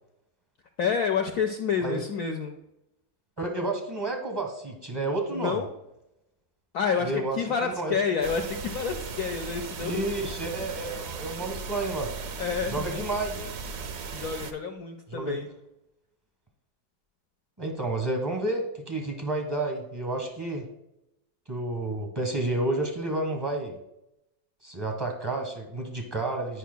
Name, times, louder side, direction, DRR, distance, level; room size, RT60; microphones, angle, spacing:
voice 1, 0.8-2.6 5.3-5.7 6.7-10.0 12.4-12.8 14.1-15.5, left 6 dB, 75° left, 4 dB, 0.8 m, -29 dB
voice 2, 3.4-5.6 7.0-8.0 9.8-12.1 12.7-13.5 15.1-15.4 17.6-20.7 21.5-23.7 24.6-26.6, right 2 dB, 25° right, 3 dB, 0.6 m, -30 dB
sound 1, 8.2-14.5, right 5 dB, 65° right, 0.9 m, -37 dB
10.0 x 5.5 x 2.2 m, 0.87 s
omnidirectional pair, 1.9 m